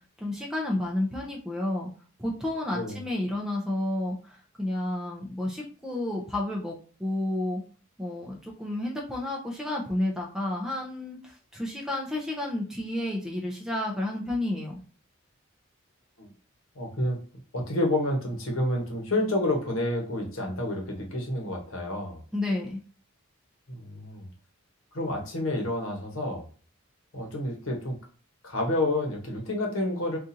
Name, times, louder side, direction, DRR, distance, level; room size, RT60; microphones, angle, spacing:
voice 1, 0.2-1.9 2.2-7.6 8.0-14.8 22.3-22.8, left 1 dB, 5° right, -2 dB, 0.5 m, -31 dB
voice 2, 16.8-17.2 17.5-22.2 23.7-24.3 24.9-26.4 27.1-28.0 28.4-30.2, left 1 dB, 75° left, 1 dB, 1.0 m, -29 dB
4.1 x 2.4 x 2.6 m, 0.39 s
head